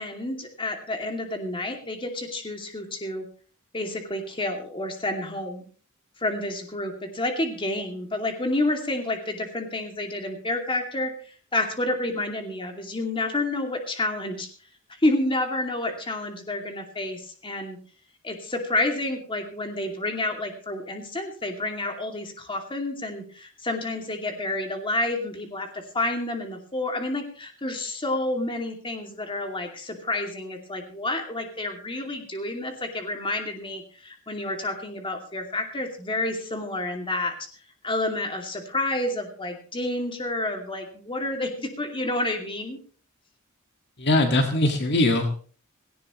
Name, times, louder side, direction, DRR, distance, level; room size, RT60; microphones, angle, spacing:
voice 1, 0.0-3.3 3.7-5.6 6.2-11.1 11.5-14.5 15.0-17.8 18.2-37.4 37.8-42.8, left 2 dB, 25° left, 3 dB, 2.6 m, -29 dB
voice 2, 44.0-45.3, left 2 dB, 55° left, 4 dB, 1.9 m, -21 dB
18.0 x 17.0 x 3.1 m, 0.41 s
head